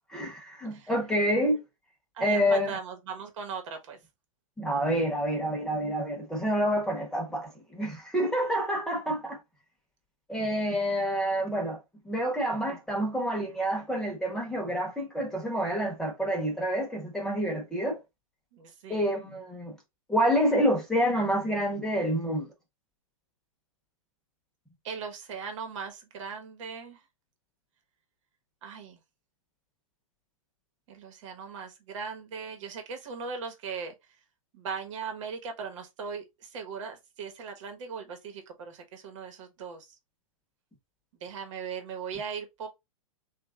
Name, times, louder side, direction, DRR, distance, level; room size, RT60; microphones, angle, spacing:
voice 1, 0.1-1.6 2.2-2.8 4.6-9.4 10.3-11.8 12.0-18.0 18.9-19.8 20.1-22.5, equal, 5° left, 0.9 m, -28 dB
voice 2, 2.1-4.0 18.5-19.1 24.8-27.0 28.6-29.0 30.9-33.9 34.5-40.0 41.2-42.7, right 5 dB, 60° right, 1.2 m, -39 dB
3.1 x 2.5 x 3.5 m
hypercardioid pair, 130°, 18 cm